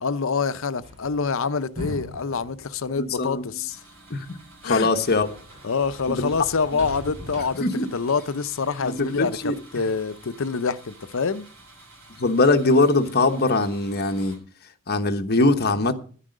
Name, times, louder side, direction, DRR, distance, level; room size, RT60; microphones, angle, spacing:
voice 1, 0.0-3.8 4.6-4.9 5.6-7.6 7.9-11.5, left 5 dB, 65° left, 0.7 m, -26 dB
sound 1, 0.8-3.8 4.2-7.6, left 1 dB, 30° right, 3.6 m, -40 dB
voice 2, 3.0-3.6 4.1-4.4 4.6-5.3 6.1-6.3 7.6-7.9 8.8-9.6 12.2-14.4 14.9-15.9, left 2 dB, 50° left, 1.1 m, -21 dB
sound 2, 3.7-14.4, right 2 dB, 75° right, 5.6 m, -50 dB
10.0 x 9.9 x 6.5 m
head